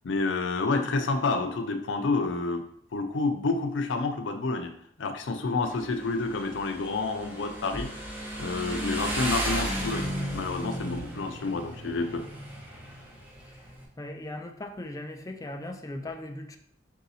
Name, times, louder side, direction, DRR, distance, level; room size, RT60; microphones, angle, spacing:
voice 1, 0.0-2.6 2.9-4.7 5.0-7.9 8.4-12.2, left 3 dB, 80° left, 6 dB, 0.5 m, -29 dB
Motorcycle, 5.6-13.9, equal, 10° right, 0.9 m, -35 dB
voice 2, 14.0-16.6, left 1 dB, 20° left, 5 dB, 0.4 m, -38 dB
4.7 x 2.7 x 4.1 m, 0.64 s
head